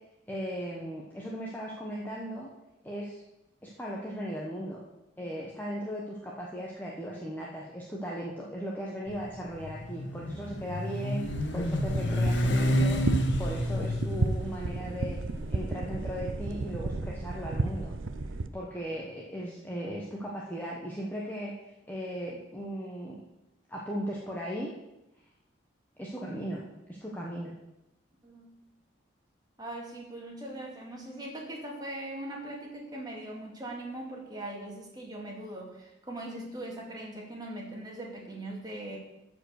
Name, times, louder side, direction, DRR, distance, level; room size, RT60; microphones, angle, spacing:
voice 1, 0.3-2.5 2.8-3.2 3.6-4.8 5.2-15.2 15.5-17.9 18.5-21.5 21.9-23.2 23.7-24.7 26.0-27.6, equal, 10° left, -4 dB, 1.2 m, -37 dB
Motorcycle, 9.1-17.3, left 1 dB, 70° left, 1.2 m, -30 dB
sound 1, 11.2-18.5, right 2 dB, 85° right, 0.7 m, -33 dB
voice 2, 28.2-28.6 29.6-39.0, right 1 dB, 20° right, -1 dB, 2.3 m, -40 dB
13.5 x 5.2 x 6.5 m, 0.94 s
head